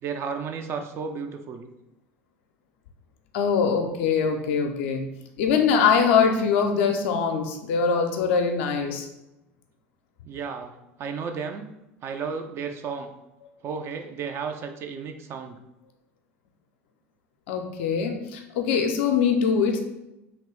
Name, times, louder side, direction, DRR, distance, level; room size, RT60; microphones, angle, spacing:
voice 1, 0.0-1.7 10.2-10.7 11.0-11.6 12.0-13.1 13.6-15.6, right 5 dB, 35° right, 5 dB, 0.4 m, -33 dB
voice 2, 3.3-5.1 5.4-9.1 17.5-19.8, left 6 dB, 60° left, 4 dB, 0.5 m, -23 dB
2.9 x 2.9 x 3.2 m, 0.92 s
figure-of-eight pair, 70°, 7 cm